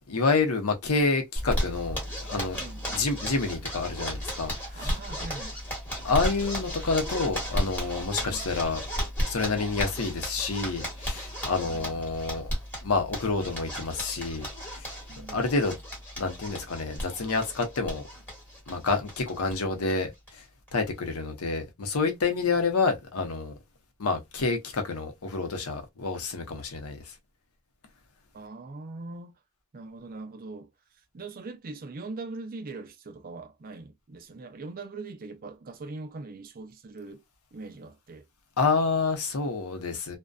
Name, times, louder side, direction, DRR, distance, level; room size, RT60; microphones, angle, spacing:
voice 1, 0.1-2.6 2.9-4.9 6.0-8.8 9.2-12.4 12.8-14.5 14.8-15.0 15.3-15.8 16.2-18.0 18.7-20.4 20.7-23.5 24.0-27.1 38.6-40.2, left 4 dB, 85° left, 0.7 m, -28 dB
Zipper (clothing), 1.4-19.5 19.9-20.0 20.3-20.4 20.7-21.1, equal, 10° left, 1.1 m, -34 dB
voice 2, 2.6-3.1 4.5-5.6 8.2-8.5 11.6-12.0 15.1-15.5 28.3-29.3 29.7-30.7 31.1-37.2 37.5-38.3, right 3 dB, 40° right, 0.5 m, -41 dB
2.5 x 2.2 x 2.2 m
head